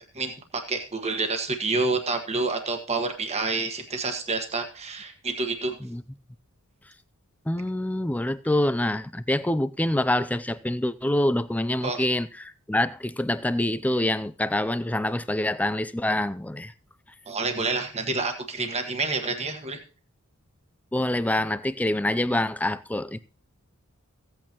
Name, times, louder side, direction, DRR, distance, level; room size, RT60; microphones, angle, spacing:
voice 1, 0.1-5.8 11.8-12.0 17.3-19.8, right 3 dB, 30° right, 1.4 m, -28 dB
voice 2, 7.5-16.7 20.9-23.2, left 1 dB, 5° left, 0.4 m, -26 dB
15.5 x 8.6 x 3.0 m
head